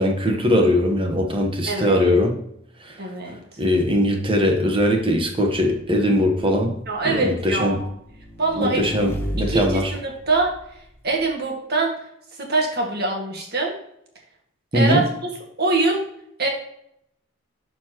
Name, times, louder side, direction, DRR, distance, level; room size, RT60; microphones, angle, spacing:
voice 1, 0.0-2.4 2.8-2.9 3.6-6.7 7.0-7.8 8.6-9.9 14.7-15.0, left 1 dB, 25° right, 3 dB, 1.2 m, -20 dB
voice 2, 1.7-2.1 3.0-3.4 6.9-7.8 8.4-8.8 9.5-10.5 11.0-11.9 12.4-13.7 14.7-15.3 15.6-16.0 16.4-16.5, right 3 dB, 50° right, 0 dB, 1.9 m, -23 dB
Motorcycle / Engine, 4.4-11.3, equal, 10° left, 1.2 m, -36 dB
12.0 x 4.4 x 3.0 m, 0.73 s
head